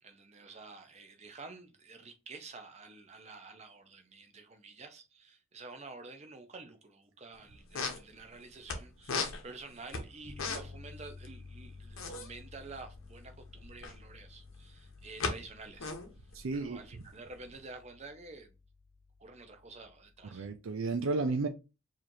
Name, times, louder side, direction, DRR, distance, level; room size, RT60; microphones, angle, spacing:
voice 1, 0.0-16.0 16.5-18.5 19.2-20.5, right 3 dB, 30° right, 0.6 m, -50 dB
sound 1, 7.3-7.4 7.6-8.8 9.0-10.9 11.1-11.3 11.5-14.0 14.6-15.3 15.6-17.5, left 4 dB, 85° left, 0.9 m, -37 dB
sound 2, 10.2-20.4, left 3 dB, 10° left, 0.8 m, -53 dB
voice 2, 16.3-16.8 20.3-21.5, right 3 dB, 75° right, 0.5 m, -32 dB
4.8 x 2.9 x 2.7 m
head